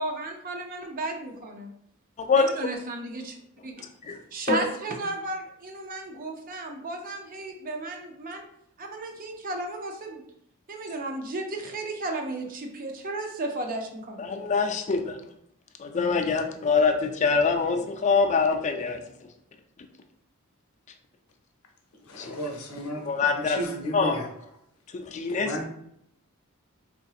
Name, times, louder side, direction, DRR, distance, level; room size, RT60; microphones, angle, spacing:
voice 1, 0.0-1.7 2.3-3.4 3.6-3.9 4.3-8.4 8.8-10.2 10.7-14.3, right 2 dB, 40° right, 3 dB, 0.5 m, -34 dB
voice 2, 14.2-15.2 15.8-19.0 22.2-22.4 23.0-23.6 23.9-24.2 24.9-25.6, left 5 dB, 35° left, 5 dB, 0.3 m, -24 dB
voice 3, 22.1-23.1 23.5-24.3 25.4-25.6, equal, 80° left, 2 dB, 0.7 m, -33 dB
3.8 x 2.6 x 2.4 m, 0.73 s
head